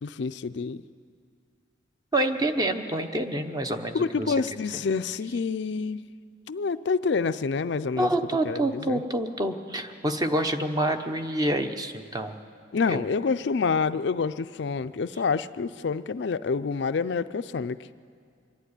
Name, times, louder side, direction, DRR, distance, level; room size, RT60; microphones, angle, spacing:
voice 1, 0.0-0.8 3.9-6.0 6.5-8.1 8.4-9.0 12.7-17.8, left 5 dB, 60° left, 12 dB, 0.4 m, -27 dB
voice 2, 2.1-4.3 8.0-12.3 12.9-13.0, right 1 dB, 20° right, 7 dB, 0.9 m, -27 dB
24.5 x 11.5 x 9.7 m, 2.2 s
head